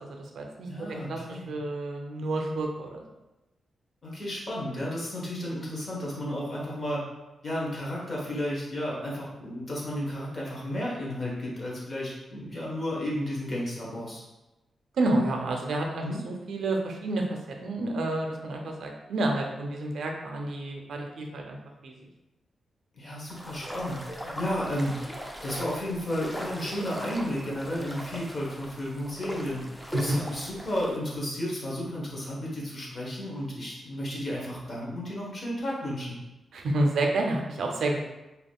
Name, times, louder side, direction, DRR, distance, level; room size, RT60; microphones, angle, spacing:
voice 1, 0.1-0.7 1.1-3.0 15.0-17.2 17.6-21.6 21.8-22.0 29.9-30.2 36.5-38.0, right 2 dB, 80° right, 1 dB, 0.5 m, -29 dB
voice 2, 0.7-1.5 4.0-7.0 7.4-14.2 16.0-16.2 23.0-29.6 29.9-36.2, left 1 dB, 40° left, -4 dB, 1.0 m, -33 dB
sound 1, 23.3-31.0, equal, ahead, 0.4 m, -39 dB
3.4 x 2.8 x 2.3 m, 1.0 s
wide cardioid pair, 110°, 0 cm